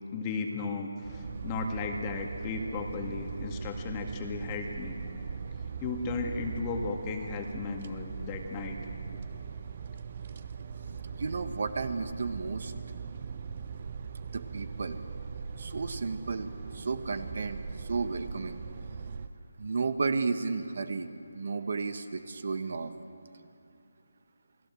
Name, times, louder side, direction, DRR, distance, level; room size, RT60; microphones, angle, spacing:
voice 1, 0.1-5.0 5.8-8.8 9.1-9.2, left 4 dB, 20° left, 3 dB, 2.0 m, -35 dB
sound 1, 1.0-19.3, right 5 dB, 40° right, 1.1 m, -40 dB
voice 2, 11.2-12.7 14.3-15.0 15.6-18.6 19.6-22.9, right 4 dB, 60° right, 10 dB, 1.4 m, -33 dB
28.5 x 18.5 x 7.8 m, 2.5 s
figure-of-eight pair, 160°, 0 cm